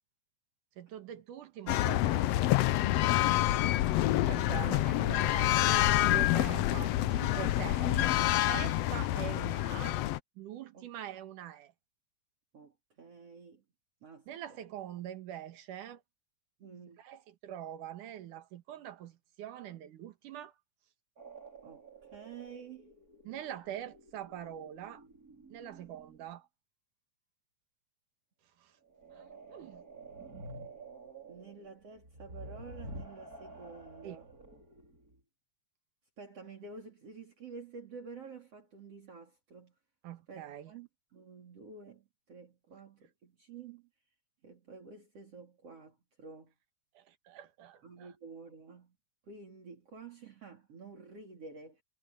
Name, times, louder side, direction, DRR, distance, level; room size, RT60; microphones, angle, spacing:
voice 1, 0.8-2.5 4.3-8.1 8.5-10.0 10.4-11.7 14.3-16.0 17.0-20.5 23.2-25.0 25.5-26.5 28.6-28.7 29.1-29.8 34.0-34.2 40.0-40.7 46.9-48.1, right 11 dB, 80° right, 3.0 m, -44 dB
sound 1, 1.7-10.2, left 15 dB, 75° left, 1.5 m, -27 dB
voice 2, 2.8-3.8 4.4-4.8 6.2-6.4 10.7-10.9 12.5-13.6 14.0-14.3 16.6-17.0 21.6-22.9 31.3-34.3 36.2-39.7 40.3-43.9 44.4-46.5 47.8-49.0 49.3-51.8, right 4 dB, 50° right, 4.3 m, -50 dB
sound 2, 21.2-26.3 28.8-35.2, right 2 dB, 25° right, 5.0 m, -50 dB
omnidirectional pair, 3.6 m